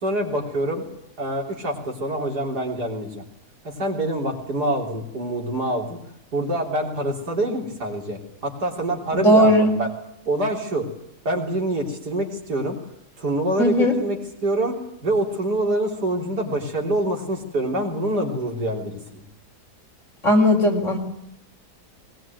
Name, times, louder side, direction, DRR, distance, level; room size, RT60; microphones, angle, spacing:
voice 1, 0.0-0.9 1.2-3.2 3.6-6.0 6.3-9.9 10.3-10.9 11.3-12.8 13.2-14.2 14.4-14.7 15.0-19.2, right 1 dB, 80° right, 1 dB, 4.1 m, -25 dB
voice 2, 9.1-9.7 13.6-13.9 20.2-21.0, equal, 50° left, 2 dB, 4.4 m, -17 dB
20.5 x 20.5 x 9.2 m, 0.78 s
omnidirectional pair, 1.7 m